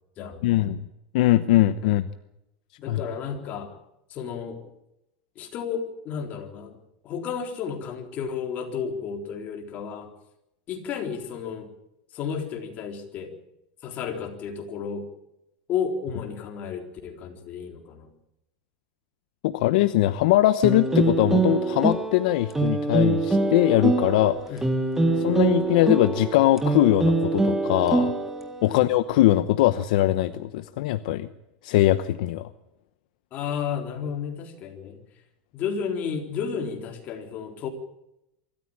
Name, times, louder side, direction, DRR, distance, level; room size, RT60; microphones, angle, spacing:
voice 1, 0.4-0.9 1.1-2.0 2.9-3.0 19.4-24.4 25.2-28.1 28.6-31.3 31.6-32.5, left 15 dB, 70° left, 12 dB, 0.9 m, -21 dB
voice 2, 2.8-3.7 4.1-4.7 5.4-6.8 7.0-10.1 10.7-11.7 12.1-13.4 13.8-15.1 15.7-18.1 24.5-24.7 25.1-25.4 28.7-28.9 33.3-35.0 35.5-37.7, left 6 dB, 35° left, 3 dB, 3.9 m, -32 dB
sound 1, 20.6-28.7, right 3 dB, 10° right, 1.7 m, -24 dB
25.0 x 14.0 x 9.0 m, 0.87 s
supercardioid pair, 155°, 5 cm